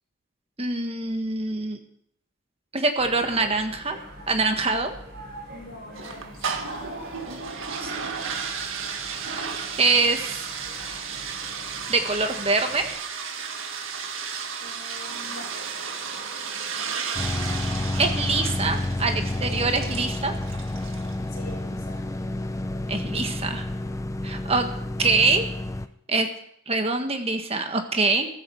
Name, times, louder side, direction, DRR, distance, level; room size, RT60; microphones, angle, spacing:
voice 1, 0.6-1.8 2.7-4.0 4.3-4.9 7.8-7.9 9.8-10.4 11.9-12.9 18.0-20.4 22.9-23.7 24.2-24.7 25.0-25.5 26.1-26.3 26.7-28.3, right 3 dB, 30° right, 5 dB, 1.5 m, -24 dB
sound 1, 3.0-12.9, equal, 55° right, 7.6 m, -43 dB
voice 2, 5.5-7.0 14.6-15.5 21.3-22.0, left 1 dB, 55° left, -2 dB, 7.3 m, -44 dB
sound 2, 5.9-21.2, right 6 dB, 75° right, 1.7 m, -34 dB
sound 3, 17.2-25.9, left 1 dB, 15° left, 0.5 m, -30 dB
14.5 x 14.0 x 4.7 m, 0.71 s
head